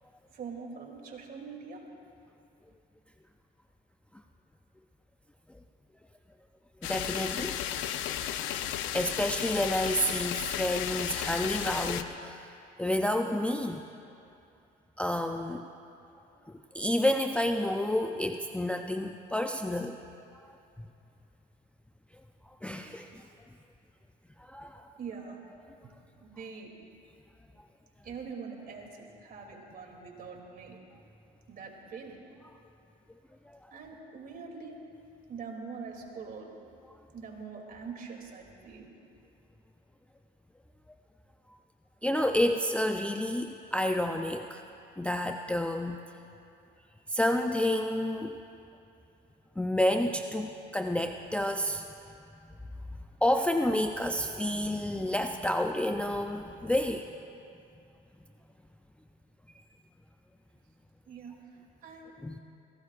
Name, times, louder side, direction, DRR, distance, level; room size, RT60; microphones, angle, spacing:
voice 1, 0.3-1.8 25.0-25.4 26.2-26.7 28.0-30.8 31.5-32.2 33.7-34.8 35.3-36.5 37.1-38.9 61.1-61.3 61.8-62.1, right 5 dB, 45° right, 1 dB, 2.8 m, -43 dB
sound 1, 6.8-12.0, left 11 dB, 70° left, 0.7 m, -34 dB
voice 2, 6.8-7.8 8.3-8.6 8.9-12.5 12.8-13.9 15.0-15.7 16.5-20.0 20.8-20.9 22.6-23.2 24.4-24.9 33.5-33.6 42.0-44.6 45.0-46.0 47.1-48.4 49.6-51.8 53.2-57.1 62.2-62.3, left 1 dB, 5° left, 4 dB, 0.5 m, -30 dB
23.0 x 17.5 x 2.5 m, 2.6 s
supercardioid pair, 95°, 20 cm